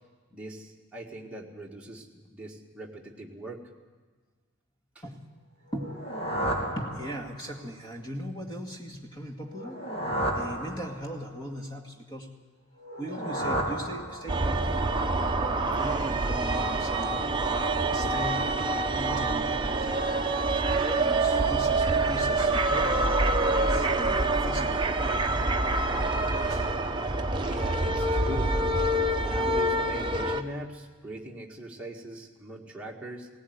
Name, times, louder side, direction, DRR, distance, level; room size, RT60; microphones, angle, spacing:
voice 1, 0.3-3.6 5.0-5.1 27.4-28.7 29.1-33.3, right 1 dB, 5° right, -3 dB, 1.9 m, -41 dB
sound 1, 5.7-7.6 9.5-11.3 12.8-14.6, right 1 dB, 50° left, 3.0 m, -33 dB
voice 2, 5.7-6.1 6.7-12.3 13.0-14.8 15.4-17.1 17.9-18.6 18.9-20.0 20.9-25.2 26.2-26.7, equal, 20° left, 1 dB, 2.1 m, -39 dB
sound 2, 14.3-30.4, right 2 dB, 20° right, 0.9 m, -26 dB
17.5 x 16.5 x 9.5 m, 1.4 s
head